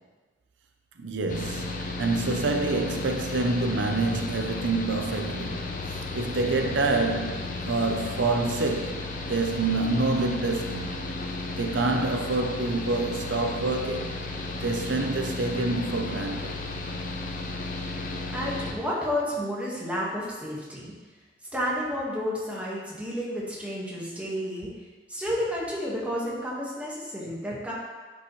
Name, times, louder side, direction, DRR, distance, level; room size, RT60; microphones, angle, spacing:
voice 1, 1.0-11.0 11.6-14.2 14.6-16.5, right 3 dB, 90° right, 0.7 m, -27 dB
Mechanical fan, 1.3-18.7, left 2 dB, 45° left, 0.7 m, -34 dB
voice 2, 17.9-20.9 21.5-24.7 25.1-27.7, equal, 10° right, 1.5 m, -31 dB
10.0 x 5.4 x 3.2 m
head